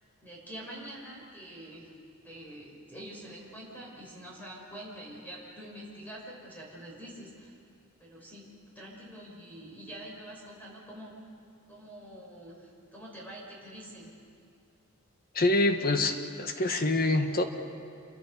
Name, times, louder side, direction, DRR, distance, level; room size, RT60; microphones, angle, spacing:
voice 1, 0.2-2.0 2.2-7.5 8.0-8.4 8.7-11.3 11.7-14.2, right 1 dB, 10° left, -4 dB, 5.9 m, -46 dB
voice 2, 15.3-17.4, left 2 dB, 45° left, 6 dB, 1.5 m, -26 dB
28.5 x 23.0 x 5.6 m, 2.5 s
head